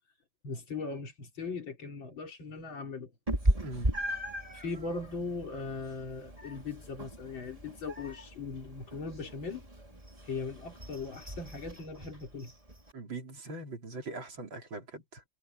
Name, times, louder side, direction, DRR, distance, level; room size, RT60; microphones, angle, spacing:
voice 1, 0.4-3.1 4.5-12.5, left 4 dB, 80° left, 4.3 m, -39 dB
Meow, 3.3-12.9, right 1 dB, 15° right, 3.8 m, -37 dB
voice 2, 3.6-3.9 12.9-15.2, right 2 dB, 85° right, 4.5 m, -41 dB
omnidirectional pair, 2.1 m